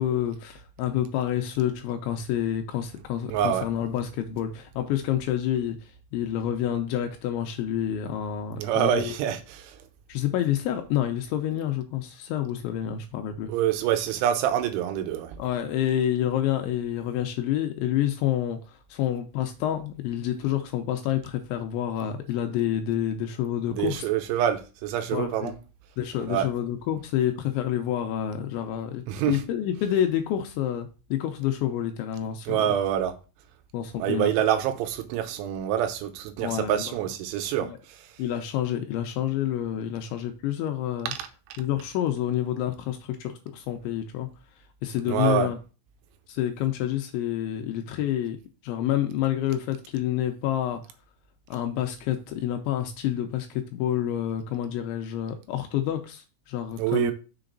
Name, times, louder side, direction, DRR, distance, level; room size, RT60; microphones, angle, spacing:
voice 1, 0.0-9.1 10.1-13.5 15.4-24.1 25.1-25.5 26.0-32.7 33.7-34.5 36.4-36.9 37.6-37.8 38.2-41.1 41.6-44.3 44.8-45.6 46.3-48.4 48.6-50.8 51.5-57.1, left 11 dB, 80° left, 2.8 m, -28 dB
voice 2, 3.3-3.7 8.6-9.8 13.5-15.4 23.7-25.5 26.3-26.5 29.1-29.4 32.5-33.1 34.0-37.7 41.2-41.3 45.1-45.5 56.8-57.1, right 10 dB, 80° right, 3.1 m, -26 dB
6.8 x 4.9 x 3.8 m
omnidirectional pair, 5.8 m